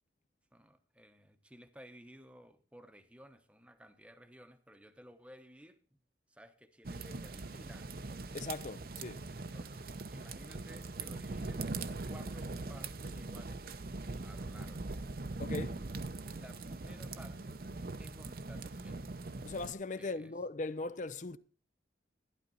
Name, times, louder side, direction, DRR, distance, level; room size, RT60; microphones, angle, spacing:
voice 1, 0.5-5.8 6.3-8.0 9.4-13.7 14.2-14.9 16.3-17.6 18.0-19.0 20.0-20.3, equal, 5° right, 0.9 m, -56 dB
sound 1, 6.8-19.7, right 3 dB, 55° right, 0.7 m, -41 dB
voice 2, 8.3-9.2 15.4-15.8 19.4-21.4, left 3 dB, 45° left, 0.5 m, -39 dB
12.0 x 11.5 x 4.1 m
head